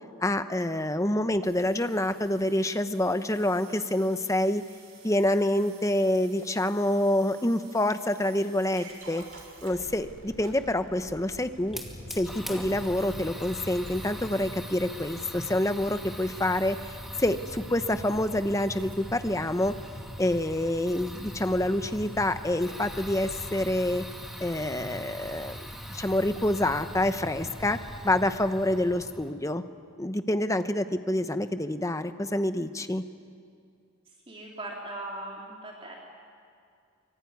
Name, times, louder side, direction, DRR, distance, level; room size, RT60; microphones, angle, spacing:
voice 1, 0.2-4.6 5.0-9.2 9.6-11.8 12.2-16.8 17.2-19.7 20.2-24.0 24.4-25.6 25.9-27.8 28.0-29.6 30.0-33.0, left 1 dB, 15° left, 10 dB, 0.9 m, -27 dB
sound 1, 1.4-19.0, right 3 dB, 90° right, 5.9 m, -52 dB
Fire, 11.7-29.3, equal, ahead, 2.4 m, -41 dB
voice 2, 34.3-36.0, right 2 dB, 25° right, -2 dB, 3.1 m, -39 dB
24.5 x 23.0 x 9.6 m, 2.4 s
head